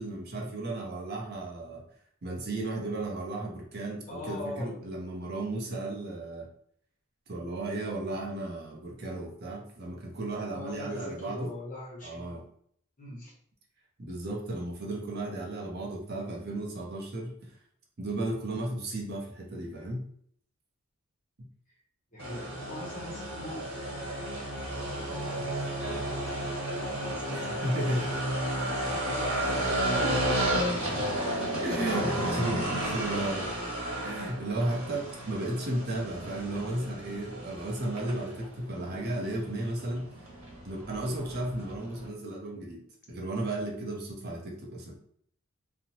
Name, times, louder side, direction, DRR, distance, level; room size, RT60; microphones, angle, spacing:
voice 1, 0.0-1.8 2.2-6.5 7.3-11.5 12.0-12.4 14.0-17.5 18.0-20.0 27.3-28.1 30.0-30.4 31.6-33.5 34.0-40.1 40.6-42.8 43.1-45.0, right 1 dB, 50° right, -1 dB, 0.6 m, -34 dB
voice 2, 4.1-4.7 10.5-12.4 13.0-13.3 22.1-23.7 24.7-27.6 27.9-28.0 28.5-30.7 31.9-33.3, left 1 dB, 40° left, -3 dB, 0.9 m, -42 dB
sound 1, 22.2-42.1, right 1 dB, 80° right, 1.2 m, -33 dB
2.8 x 2.1 x 2.8 m, 0.63 s
head